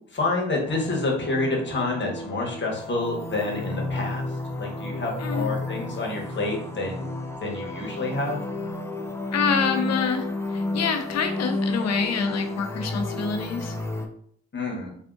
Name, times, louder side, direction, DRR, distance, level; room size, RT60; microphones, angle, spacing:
voice 1, 0.1-7.2 7.4-8.4 14.5-14.9, left 2 dB, 35° left, -1 dB, 1.0 m, -28 dB
sound 1, 0.6-14.1, left 2 dB, 10° left, 0.3 m, -32 dB
voice 2, 9.3-13.8, left 5 dB, 60° left, 5 dB, 0.6 m, -27 dB
3.5 x 2.5 x 2.5 m, 0.63 s
cardioid pair, 80°, 30 cm